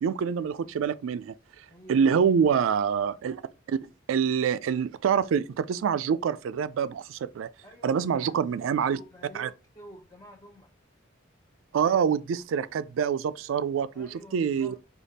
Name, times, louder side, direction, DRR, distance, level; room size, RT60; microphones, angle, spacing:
voice 1, 0.0-1.3 1.9-3.4 3.7-3.8 4.1-7.5 7.8-9.0 9.3-9.5 11.7-14.8, right 7 dB, 75° right, 0.3 m, -26 dB
voice 2, 1.7-2.3 7.6-10.7 13.9-14.8, equal, 15° left, 0.5 m, -49 dB
5.0 x 2.4 x 4.0 m
head